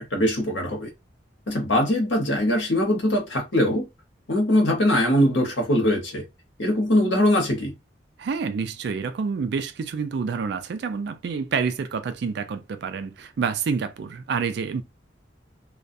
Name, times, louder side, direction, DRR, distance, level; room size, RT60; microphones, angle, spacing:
voice 1, 0.1-0.9 1.5-3.8 4.3-6.2 6.6-7.7, left 1 dB, 90° left, 1.0 m, -21 dB
voice 2, 8.2-14.8, right 5 dB, 65° right, 0.3 m, -28 dB
2.3 x 2.1 x 2.6 m
head